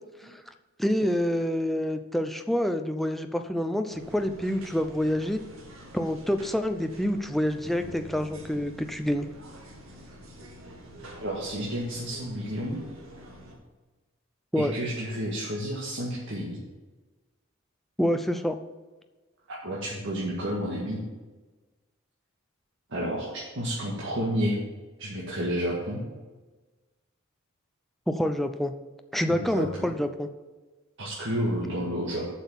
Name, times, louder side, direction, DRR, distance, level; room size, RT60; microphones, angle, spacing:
voice 1, 0.8-5.4 5.9-9.3 14.5-14.7 18.0-18.6 28.1-28.7 29.1-30.3, equal, ahead, 6 dB, 0.5 m, -27 dB
sound 1, 3.9-13.6, equal, 80° right, 2.0 m, -47 dB
Bass guitar, 7.8-11.6, left 2 dB, 30° right, 3.4 m, -51 dB
voice 2, 11.2-12.8 14.6-16.6 19.5-21.0 22.9-24.6 25.0-26.0 29.3-29.7 31.0-32.3, equal, 65° right, -5 dB, 1.9 m, -30 dB
7.8 x 6.4 x 7.3 m, 1.2 s
head